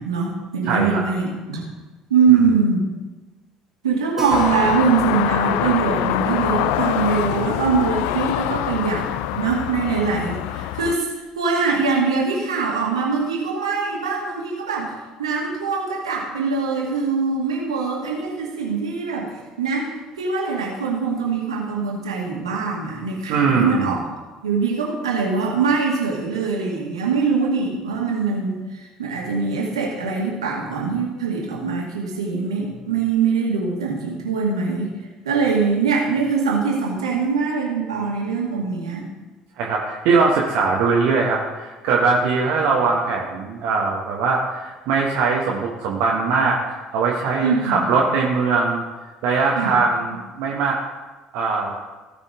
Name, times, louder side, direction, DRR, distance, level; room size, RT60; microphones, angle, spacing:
voice 1, 0.0-1.6 2.1-2.9 3.8-11.1 11.4-14.9 15.2-19.3 19.6-19.9 20.2-24.0 24.4-34.9 35.3-39.1 47.4-47.9 49.6-49.8, right 5 dB, 80° right, -2 dB, 2.3 m, -22 dB
voice 2, 0.6-1.0 2.3-2.4 23.3-23.9 39.6-48.8 49.2-50.8 51.3-51.8, right 4 dB, 60° right, -2 dB, 1.4 m, -21 dB
Keyboard (musical), 4.2-9.2 9.5-9.6 9.9-10.0 10.2-10.3 10.9-11.2, right 3 dB, 10° right, 3.1 m, -38 dB
sound 1, 4.3-11.0, left 13 dB, 65° left, 0.4 m, -24 dB
17.0 x 6.0 x 3.8 m, 1.2 s
figure-of-eight pair, 55°, 3 cm